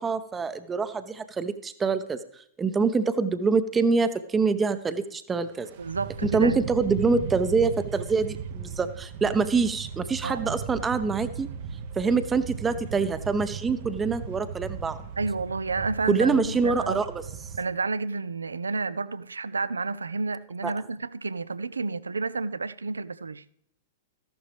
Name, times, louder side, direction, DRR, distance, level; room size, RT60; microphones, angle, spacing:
voice 1, 0.0-2.2 2.6-5.7 6.2-11.5 12.0-15.0 16.1-17.1 20.6-20.7, right 4 dB, 15° right, 0.7 m, -25 dB
sound 1, 5.4-17.6, right 7 dB, 50° right, 0.8 m, -37 dB
voice 2, 5.8-6.6 10.2-10.6 15.2-17.1 17.6-23.4, right 3 dB, 80° right, 0.5 m, -30 dB
14.0 x 11.5 x 3.3 m
figure-of-eight pair, 105°, 0 cm